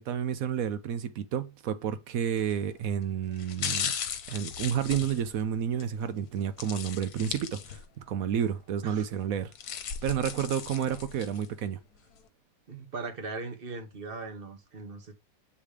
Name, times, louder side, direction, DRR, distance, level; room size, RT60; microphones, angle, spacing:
voice 1, 0.0-3.9 4.3-7.8 8.1-9.7 10.0-11.8, right 8 dB, 70° right, 1.0 m, -30 dB
sound 1, 2.4-2.7 3.3-5.9 6.6-8.0 8.4-8.5 9.3-11.5 12.0-12.1, left 8 dB, 70° left, 1.4 m, -36 dB
voice 2, 12.7-15.1, right 4 dB, 40° right, 1.4 m, -39 dB
7.4 x 3.2 x 5.0 m
omnidirectional pair, 1.7 m